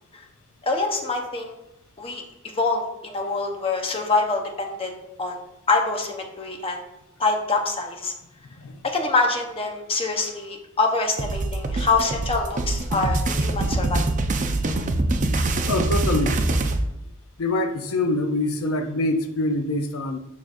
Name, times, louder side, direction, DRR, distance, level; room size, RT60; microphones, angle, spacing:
voice 1, 0.6-1.5 2.0-2.2 2.5-4.9 5.2-5.4 5.7-6.8 7.2-8.1 8.8-14.0, left 3 dB, 25° left, 2 dB, 0.9 m, -25 dB
sound 1, 11.2-16.8, right 2 dB, 35° right, 0.6 m, -24 dB
voice 2, 15.7-16.4 17.4-20.2, left 2 dB, 80° left, 6 dB, 0.6 m, -25 dB
7.2 x 6.1 x 2.6 m, 0.89 s
head